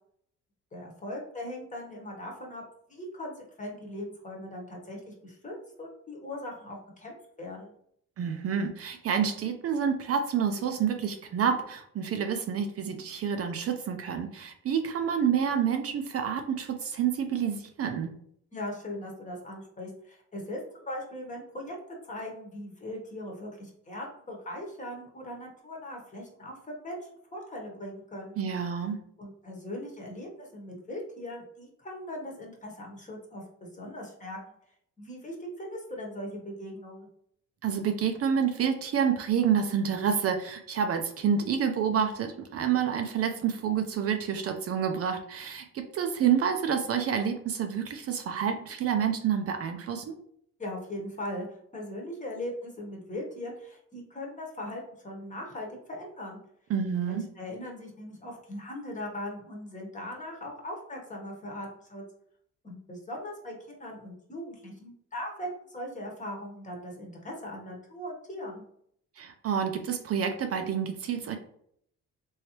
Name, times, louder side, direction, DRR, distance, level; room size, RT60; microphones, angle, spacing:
voice 1, 0.7-2.6 2.9-7.7 18.5-21.8 22.0-28.3 29.2-34.5 35.0-37.1 50.6-51.5 51.7-56.4 57.1-62.0 62.6-68.6, left 1 dB, 25° left, 0 dB, 1.0 m, -39 dB
voice 2, 8.2-18.1 28.4-29.0 37.6-50.2 56.7-57.2 69.2-71.4, right 7 dB, 50° right, 5 dB, 0.5 m, -28 dB
3.1 x 2.7 x 2.9 m, 0.68 s
cardioid pair, 90°, 30 cm